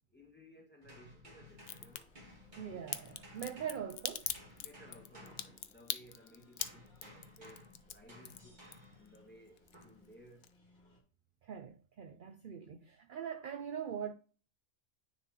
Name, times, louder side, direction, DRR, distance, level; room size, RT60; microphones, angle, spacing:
voice 1, 0.1-2.1 4.6-8.6 8.9-10.5, equal, 10° left, 1.6 m, -59 dB
sound 1, 0.8-6.1 6.6-9.1 9.7-10.0, left 1 dB, 35° right, 2.1 m, -56 dB
Crack, 1.6-2.0 2.9-9.2 9.5-10.1 10.4-10.5, left 10 dB, 60° left, 0.7 m, -41 dB
sound 2, 1.8-11.0, left 1 dB, 35° left, 2.3 m, -66 dB
voice 2, 2.6-4.3 11.4-14.1, right 8 dB, 65° right, 0.5 m, -42 dB
9.7 x 4.1 x 2.9 m
omnidirectional pair, 1.4 m